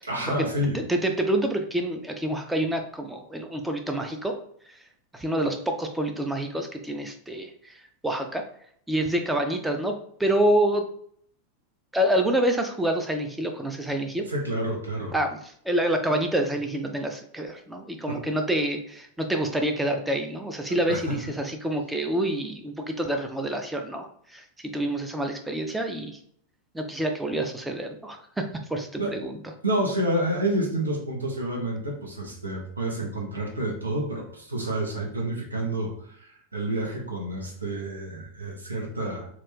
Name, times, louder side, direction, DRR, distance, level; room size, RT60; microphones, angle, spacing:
voice 1, 0.1-0.8 14.3-15.1 18.1-18.2 20.9-21.2 29.0-29.2 29.6-39.3, right 1 dB, 80° right, -1 dB, 0.8 m, -29 dB
voice 2, 0.7-4.4 5.1-7.8 8.0-8.4 8.9-9.9 10.2-10.9 11.9-14.3 15.1-26.2 26.7-29.4, right 1 dB, 5° right, 5 dB, 0.4 m, -27 dB
2.5 x 2.3 x 3.5 m, 0.64 s
figure-of-eight pair, 90°, 0 cm